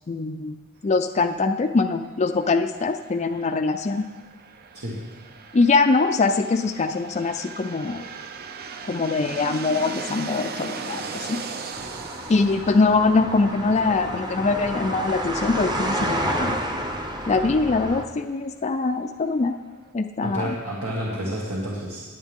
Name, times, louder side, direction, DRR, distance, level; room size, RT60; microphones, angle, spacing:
voice 1, 0.1-0.6 0.8-4.0 5.5-8.0 8.9-11.4 12.3-16.6 17.3-19.6 19.9-20.6, left 3 dB, 30° left, 6 dB, 0.4 m, -23 dB
sound 1, 2.3-19.9, right 5 dB, 45° right, 0.6 m, -40 dB
sound 2, 11.7-18.0, right 1 dB, 20° right, 0.9 m, -30 dB
voice 2, 20.2-22.0, equal, 85° right, -6 dB, 2.1 m, -30 dB
20.0 x 8.0 x 3.6 m, 1.3 s
head